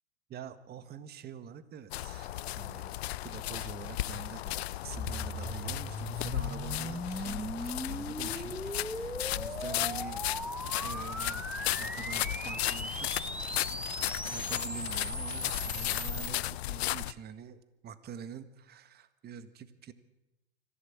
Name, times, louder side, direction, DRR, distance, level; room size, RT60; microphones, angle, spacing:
voice 1, 0.3-10.3 10.8-11.5 11.8-13.7 14.2-19.9, right 8 dB, 30° right, 12 dB, 1.7 m, -46 dB
sound 1, 1.9-17.1, left 15 dB, 75° left, 0.7 m, -35 dB
sound 2, 4.9-16.3, right 1 dB, 5° right, 1.6 m, -39 dB
24.5 x 15.5 x 8.7 m, 0.98 s
hypercardioid pair, 110°, 32 cm